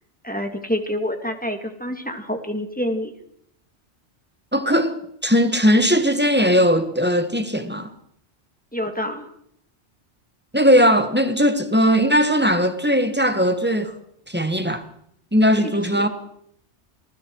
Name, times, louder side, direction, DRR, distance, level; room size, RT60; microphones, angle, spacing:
voice 1, 0.2-3.1 8.7-9.2 15.6-16.1, equal, 5° left, 2.3 m, -27 dB
voice 2, 4.5-5.0 5.2-7.9 10.5-13.9 14.3-14.8 15.3-16.1, equal, 10° right, 1.6 m, -18 dB
29.0 x 19.5 x 4.8 m
omnidirectional pair, 1.2 m